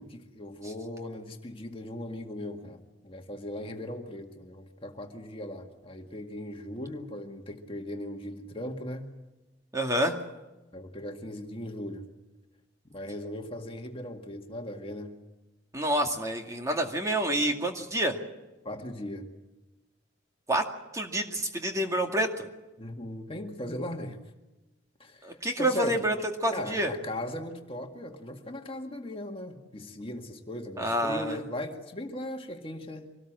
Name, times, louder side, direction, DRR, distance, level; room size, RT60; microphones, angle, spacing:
voice 1, 0.0-9.1 10.7-12.1 12.9-15.2 18.6-19.3 22.8-24.2 25.0-26.0 26.5-33.2, left 1 dB, 30° left, 3 dB, 2.0 m, -38 dB
voice 2, 9.7-10.1 15.7-18.2 20.5-20.6 20.9-22.5 25.2-26.2 26.4-26.9 30.8-31.4, right 1 dB, 15° right, 3 dB, 2.2 m, -28 dB
25.0 x 19.0 x 7.6 m, 1.1 s
head